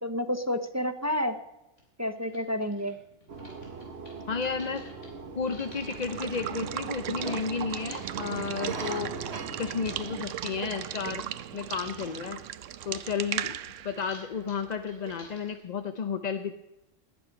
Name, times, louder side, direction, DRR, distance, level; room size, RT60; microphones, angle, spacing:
voice 1, 0.0-1.4 2.0-3.0, left 1 dB, 15° right, 9 dB, 0.6 m, -30 dB
sound 1, 1.1-1.2 1.8-1.9 2.2-7.4 7.9-11.3 11.6-12.3 12.6-15.6, left 1 dB, 70° left, 3.8 m, -52 dB
sound 2, 3.3-10.2, right 4 dB, 55° right, 1.6 m, -40 dB
voice 2, 4.3-4.9 5.3-9.1 9.6-11.2 11.5-12.4 12.8-13.6 13.8-16.5, left 6 dB, 45° left, 9 dB, 0.6 m, -32 dB
Water / Water tap faucet / Liquid, 5.7-15.3, right 11 dB, 80° right, 1.0 m, -37 dB
19.5 x 9.3 x 5.2 m, 0.97 s
omnidirectional pair, 1.3 m